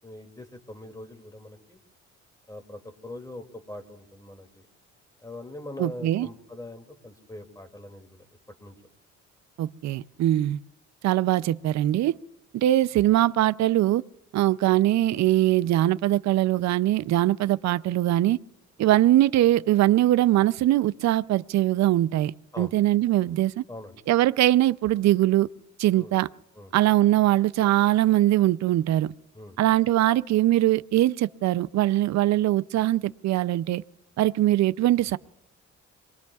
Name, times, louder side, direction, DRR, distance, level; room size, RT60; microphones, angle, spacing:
voice 1, 0.0-1.8 2.5-4.7 5.2-8.3 8.6-8.7 18.8-18.9 22.5-22.7 23.7-24.0 25.9-26.1 26.5-26.7 29.3-29.6, left 1 dB, 10° left, 2.4 m, -42 dB
voice 2, 5.8-6.3 9.6-10.6 11.0-12.2 12.5-14.0 14.3-18.4 18.8-23.6 24.1-25.5 25.8-26.3 26.7-29.1 29.6-33.8 34.2-35.2, right 14 dB, 65° right, 0.5 m, -22 dB
27.5 x 22.0 x 2.4 m
cardioid pair, 90°, 30 cm